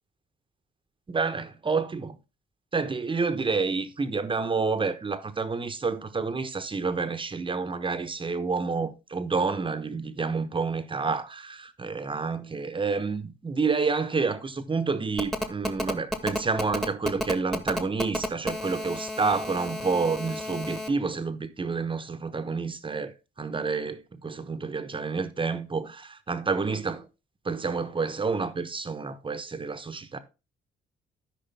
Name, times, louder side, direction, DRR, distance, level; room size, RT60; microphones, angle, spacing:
voice 1, 1.1-2.2 2.7-27.1 27.4-30.2, right 4 dB, 25° right, 1.1 m, -29 dB
Telephone, 15.2-20.9, equal, ahead, 1.3 m, -31 dB
13.0 x 5.0 x 3.4 m
cardioid pair, 90°, 20 cm